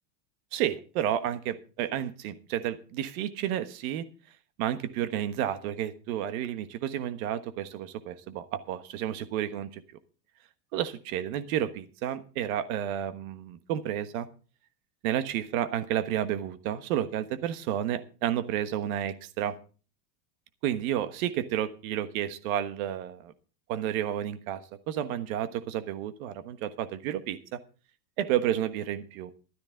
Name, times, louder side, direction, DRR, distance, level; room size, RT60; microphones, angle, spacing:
voice 1, 0.5-4.0 4.6-9.7 10.7-14.3 15.0-19.5 20.6-23.3 23.7-27.6 28.2-29.3, right 11 dB, 55° right, 10 dB, 1.4 m, -31 dB
13.0 x 13.0 x 3.8 m, 0.36 s
supercardioid pair, 165°, 49 cm